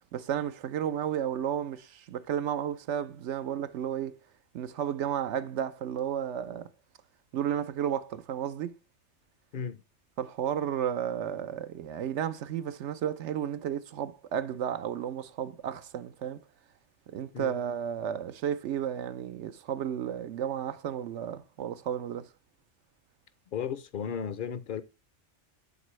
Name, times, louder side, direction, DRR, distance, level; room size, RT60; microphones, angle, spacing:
voice 1, 0.1-4.2 4.5-6.7 7.3-8.8 10.2-16.4 17.1-22.3, right 9 dB, 75° right, 0.9 m, -33 dB
voice 2, 23.5-24.8, left 7 dB, 55° left, 0.6 m, -34 dB
11.0 x 4.1 x 3.1 m
omnidirectional pair, 1.2 m